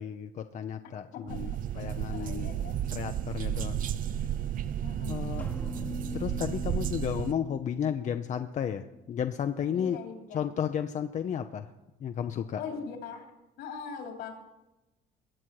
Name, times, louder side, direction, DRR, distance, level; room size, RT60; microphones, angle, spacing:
voice 1, 0.0-2.5 2.9-3.8 4.2-4.3 5.1-5.5 6.1-10.0 10.3-11.7 12.0-12.6, left 8 dB, 45° left, 7 dB, 0.7 m, -33 dB
sound 1, 1.3-7.3, right 10 dB, 55° right, 0.6 m, -33 dB
voice 2, 2.1-2.8 3.8-4.0 4.8-5.3 9.7-10.4 12.5-13.2 13.6-14.3, left 6 dB, 80° left, 3 dB, 3.1 m, -41 dB
sound 2, 5.4-9.2, left 3 dB, 10° left, 1.1 m, -44 dB
22.0 x 7.4 x 4.8 m, 0.98 s
cardioid pair, 110°, 17 cm